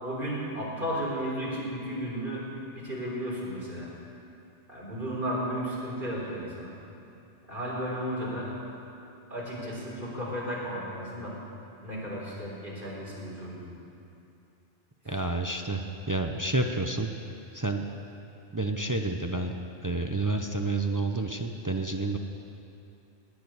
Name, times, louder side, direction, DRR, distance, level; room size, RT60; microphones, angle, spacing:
voice 1, 0.0-2.4 2.8-3.9 4.7-6.7 7.5-8.5 9.3-11.3 11.8-13.7, equal, 45° right, -5 dB, 4.2 m, -34 dB
voice 2, 15.0-17.1 17.5-17.8 18.5-19.6 19.8-22.2, right 2 dB, 20° right, 4 dB, 0.6 m, -29 dB
18.5 x 6.9 x 9.5 m, 2.8 s
omnidirectional pair, 1.2 m